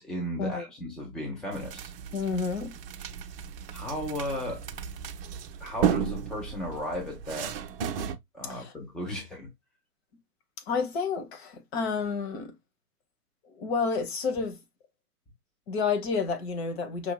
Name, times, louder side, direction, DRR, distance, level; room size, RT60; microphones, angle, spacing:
voice 1, 0.0-1.9 3.7-4.7 5.6-7.5 8.3-9.5, left 1 dB, ahead, 0.7 m, -35 dB
sound 1, 1.5-8.2, right 8 dB, 35° right, 0.7 m, -34 dB
voice 2, 2.1-2.7 8.4-8.7 10.7-12.5 13.5-14.6 15.7-17.1, left 5 dB, 40° left, 1.3 m, -30 dB
5.8 x 2.9 x 2.2 m
figure-of-eight pair, 120°, 47 cm